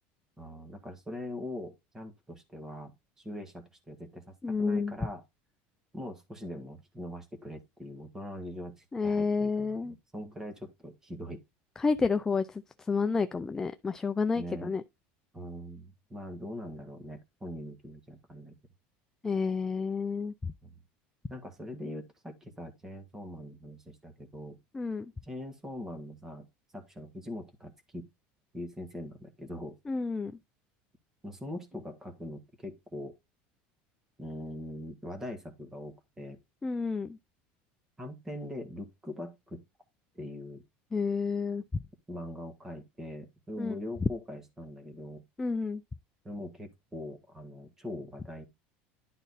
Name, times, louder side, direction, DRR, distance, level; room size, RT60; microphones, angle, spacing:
voice 1, 0.4-5.2 5.9-11.4 14.3-14.7 15.3-18.6 20.6-20.7 21.3-24.6 25.2-26.5 26.7-28.1 28.5-29.8 31.2-33.1 34.2-36.4 38.0-39.6 40.1-40.6 42.1-45.2 46.2-48.4, left 1 dB, 10° right, 1.7 m, -42 dB
voice 2, 4.4-4.9 8.9-9.9 11.8-12.6 12.9-14.8 19.2-20.3 24.7-25.1 29.9-30.3 36.6-37.2 40.9-41.6 43.6-43.7 45.4-45.8, left 4 dB, 10° left, 0.4 m, -30 dB
11.0 x 4.0 x 4.1 m
cardioid pair, 165°, 5 cm